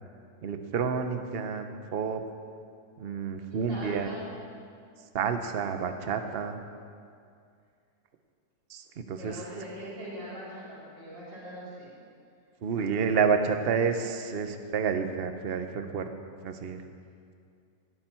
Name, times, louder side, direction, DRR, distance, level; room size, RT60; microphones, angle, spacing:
voice 1, 0.4-2.2 3.0-4.1 5.1-6.6 8.7-9.4 12.6-16.1 16.4-16.8, right 6 dB, 45° right, 7 dB, 0.8 m, -29 dB
voice 2, 3.5-4.3 9.1-11.9, equal, 75° right, -8 dB, 5.1 m, -41 dB
17.5 x 12.5 x 4.5 m, 2.3 s
omnidirectional pair, 2.0 m